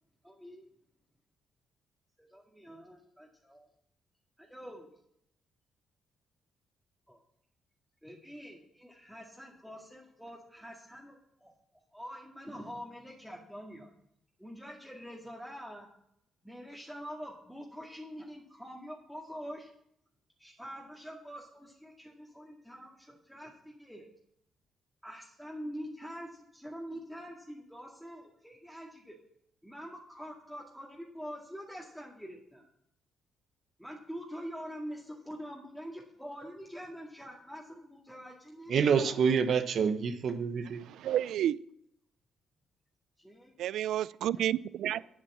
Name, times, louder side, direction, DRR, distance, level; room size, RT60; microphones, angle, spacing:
voice 1, 0.2-0.7 2.2-3.7 4.4-4.9 7.1-7.2 8.0-11.5 11.9-13.9 14.4-15.9 16.4-19.7 20.4-24.1 25.0-29.2 29.6-32.7 33.8-39.2 43.2-43.5, equal, ahead, -2 dB, 2.1 m, -45 dB
voice 2, 38.7-40.8, right 6 dB, 60° right, 8 dB, 1.0 m, -27 dB
voice 3, 40.8-41.6 43.6-45.0, right 11 dB, 80° right, 19 dB, 0.4 m, -30 dB
8.9 x 8.8 x 7.4 m, 0.73 s
cardioid pair, 90°, 0 cm